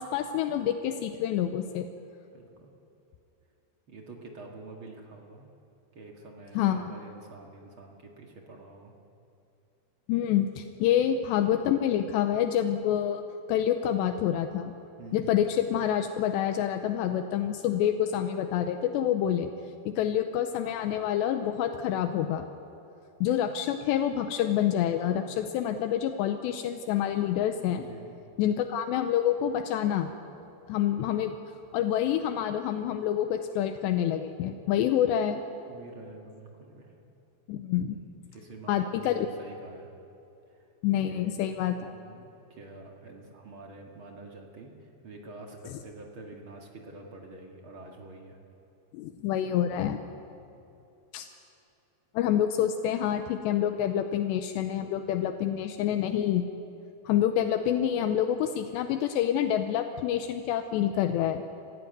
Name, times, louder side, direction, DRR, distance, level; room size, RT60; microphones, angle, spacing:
voice 1, 0.0-1.9 6.6-6.8 10.1-13.2 13.5-14.7 15.1-19.5 19.9-22.4 23.2-27.8 28.4-30.1 30.7-31.4 31.7-35.4 37.5-38.0 38.7-39.3 40.8-41.9 48.9-50.0 51.1-51.3 52.1-56.5 57.1-61.4, left 10 dB, 80° left, 7 dB, 2.9 m, -27 dB
voice 2, 2.3-2.7 3.9-5.5 5.9-8.9 11.0-11.1 15.0-15.4 25.2-25.5 27.7-28.1 35.7-36.9 37.9-39.9 41.0-41.5 41.9-48.4, right 2 dB, 45° right, 1 dB, 1.7 m, -47 dB
25.0 x 16.0 x 9.4 m, 2.8 s
omnidirectional pair, 5.2 m